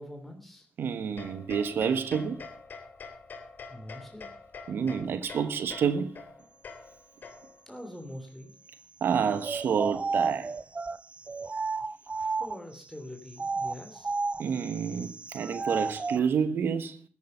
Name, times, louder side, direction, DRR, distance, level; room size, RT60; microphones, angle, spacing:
voice 1, 0.0-0.7 3.7-4.3 7.7-8.5 12.1-14.1, left 1 dB, 5° left, 3.1 m, -44 dB
voice 2, 0.8-2.4 4.7-6.2 9.0-10.5 14.4-17.0, right 7 dB, 90° right, 1.1 m, -29 dB
sound 1, 1.2-7.7, left 4 dB, 65° left, 3.5 m, -46 dB
sound 2, 9.4-12.8 13.3-16.2, right 4 dB, 35° right, 0.6 m, -33 dB
13.0 x 10.5 x 6.7 m
cardioid pair, 80°, 4 cm